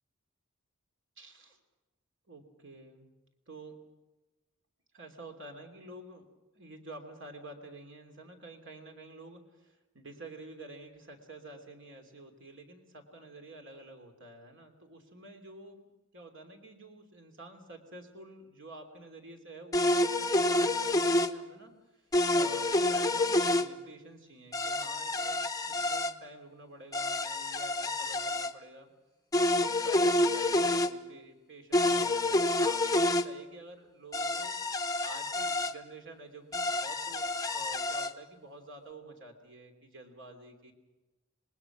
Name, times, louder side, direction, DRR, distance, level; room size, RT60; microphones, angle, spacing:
voice 1, 1.2-1.6 2.3-3.1 3.5-3.8 4.9-6.3 6.5-15.8 16.1-28.9 29.5-34.6 35.0-40.7, right 2 dB, 60° right, 4 dB, 3.0 m, -49 dB
sound 1, 19.7-21.3 22.1-23.7 24.5-26.1 26.9-28.5 29.3-30.9 31.7-33.3 34.1-35.7 36.5-38.1, left 2 dB, 15° left, 0.7 m, -28 dB
26.0 x 20.0 x 6.1 m, 1.1 s
head